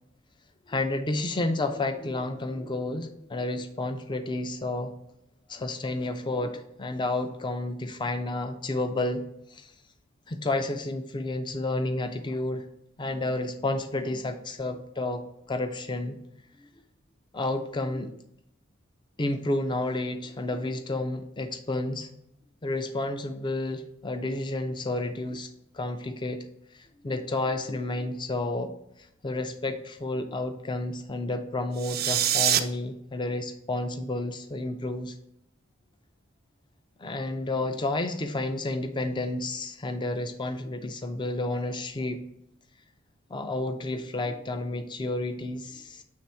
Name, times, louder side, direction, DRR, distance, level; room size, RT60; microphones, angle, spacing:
voice 1, 0.7-4.9 5.5-9.2 9.5-9.7 10.3-12.6 13.0-15.2 15.5-16.2 17.3-18.1 19.2-22.1 22.6-25.5 25.7-26.4 26.7-28.7 29.2-35.2 37.0-42.2 43.3-46.0, left 2 dB, 20° left, 8 dB, 0.4 m, -31 dB
sound 1, 31.7-32.6, right 11 dB, 50° right, 0.4 m, -24 dB
7.4 x 3.4 x 4.3 m, 0.77 s
head